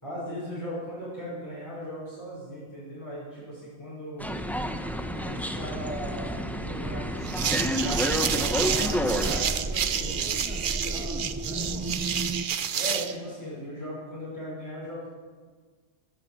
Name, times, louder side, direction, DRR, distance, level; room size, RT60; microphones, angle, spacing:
voice 1, 0.0-4.3 5.1-10.3 12.8-15.1, equal, 15° left, -9 dB, 5.8 m, -37 dB
sound 1, 4.2-9.4, equal, ahead, 0.7 m, -30 dB
sound 2, 7.2-13.1, right 8 dB, 55° right, 0.8 m, -29 dB
sound 3, 7.4-12.5, right 2 dB, 25° right, 0.3 m, -34 dB
voice 2, 9.9-12.3, left 1 dB, 55° left, -4 dB, 3.9 m, -46 dB
13.5 x 9.2 x 7.6 m, 1.5 s
omnidirectional pair, 1.1 m